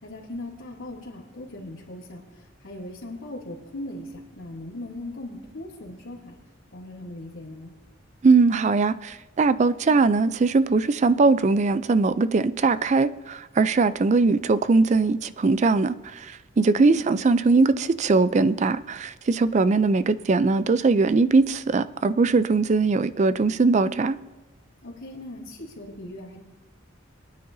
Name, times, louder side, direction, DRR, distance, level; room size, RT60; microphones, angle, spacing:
voice 1, 0.0-2.2 2.6-6.3 6.7-7.7 16.6-17.1 24.8-26.4, left 1 dB, 80° left, -5 dB, 2.7 m, -39 dB
voice 2, 8.2-24.2, right 3 dB, 35° right, 14 dB, 0.4 m, -21 dB
27.5 x 9.6 x 2.7 m, 1.1 s
head